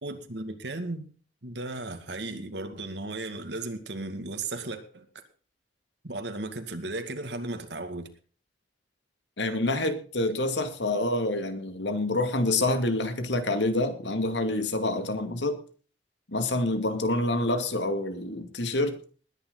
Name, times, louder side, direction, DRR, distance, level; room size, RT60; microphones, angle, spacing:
voice 1, 0.0-1.0 1.4-5.1 6.0-8.1, right 2 dB, 75° right, 2.2 m, -35 dB
voice 2, 9.4-15.6 16.3-19.0, left 2 dB, 85° left, 2.4 m, -27 dB
20.0 x 10.5 x 4.0 m
head